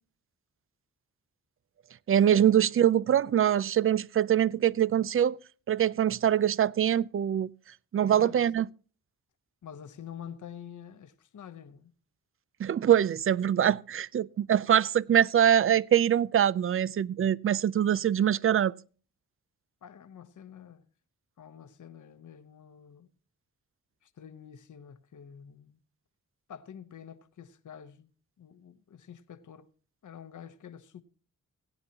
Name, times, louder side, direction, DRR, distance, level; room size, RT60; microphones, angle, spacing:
voice 1, 2.1-5.4 5.7-7.5 7.9-8.7 12.6-18.7, right 10 dB, 40° right, 0.4 m, -24 dB
voice 2, 8.0-8.3 9.6-11.9 19.8-20.9 21.4-23.1 24.0-25.8 26.5-28.1 28.4-29.7 30.0-31.0, left 8 dB, 65° left, 0.9 m, -47 dB
17.0 x 9.8 x 2.9 m
cardioid pair, 80°, 33 cm